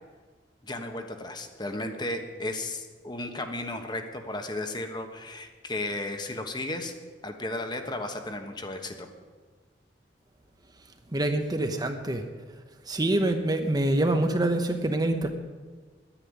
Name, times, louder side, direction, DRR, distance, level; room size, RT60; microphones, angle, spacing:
voice 1, 0.6-6.9 7.2-9.1, left 2 dB, 25° left, 5 dB, 1.2 m, -34 dB
voice 2, 11.1-12.2 12.8-15.3, right 1 dB, 20° right, 6 dB, 0.9 m, -25 dB
10.5 x 10.0 x 9.5 m, 1.5 s
head